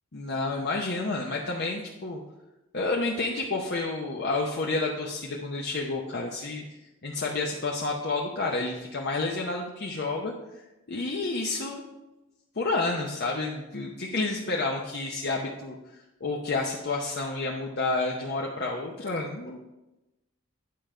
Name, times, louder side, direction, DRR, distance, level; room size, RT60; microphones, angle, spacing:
voice 1, 0.1-2.2 2.7-6.6 7.0-10.6 10.9-11.8 12.6-15.8 16.2-19.6, left 3 dB, 50° left, -1 dB, 0.8 m, -30 dB
9.6 x 5.1 x 4.5 m, 1.0 s
head